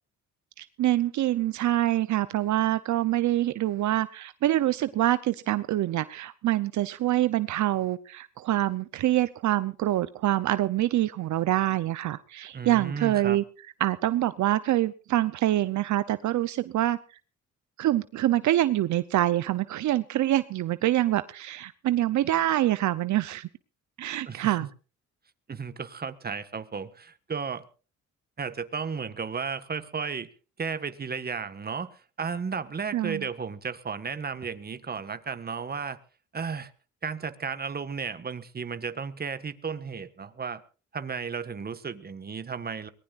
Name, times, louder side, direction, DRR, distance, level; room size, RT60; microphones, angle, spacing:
voice 1, 0.6-13.4 13.8-17.0 17.8-23.5 24.0-24.7 32.9-33.2, right 14 dB, 70° right, 14 dB, 0.7 m, -25 dB
voice 2, 12.5-13.4 24.3-24.7 25.5-27.6 28.4-30.3 30.6-36.0 36.3-36.7 37.0-40.6 40.9-42.9, right 5 dB, 30° right, 11 dB, 1.6 m, -34 dB
23.0 x 19.5 x 2.5 m, 0.37 s
cardioid pair, 90°, 30 cm